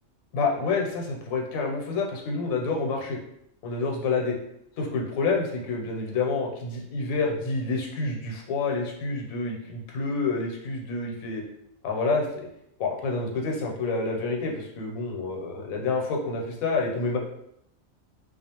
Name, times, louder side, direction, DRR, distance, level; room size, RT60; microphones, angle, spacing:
voice 1, 0.3-3.2 3.6-4.3 4.8-11.4 11.8-12.3 12.8-17.2, left 3 dB, 85° left, 0 dB, 1.1 m, -28 dB
2.4 x 2.3 x 2.8 m, 0.75 s
omnidirectional pair, 1.4 m